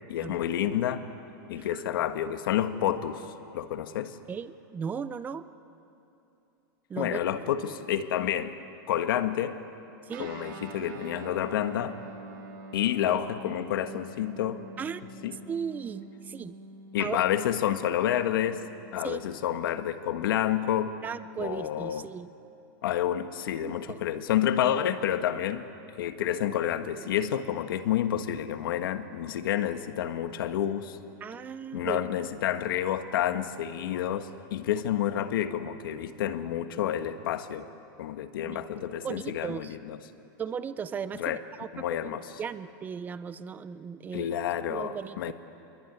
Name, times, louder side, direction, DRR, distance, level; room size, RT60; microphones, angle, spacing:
voice 1, 0.1-1.1 1.5-4.2 7.0-8.6 8.9-9.6 10.2-12.0 12.7-14.6 15.2-15.4 16.9-21.0 21.4-22.1 22.8-25.7 26.0-31.0 31.7-37.7 38.0-40.0 41.1-41.4 41.7-42.4 44.1-45.3, left 10 dB, 80° left, 9 dB, 1.6 m, -29 dB
voice 2, 4.3-5.4 6.9-7.5 10.1-10.3 14.8-15.0 15.5-16.5 17.0-17.2 19.0-19.2 21.0-22.3 23.5-24.0 31.2-32.0 38.4-38.7 38.9-39.7 40.4-44.4 44.7-45.3, right 7 dB, 15° right, 14 dB, 0.7 m, -37 dB
Guitar, 10.1-20.0, right 2 dB, 70° right, 3.1 m, -46 dB
27.0 x 22.5 x 9.7 m, 2.8 s
supercardioid pair, 160°, 11 cm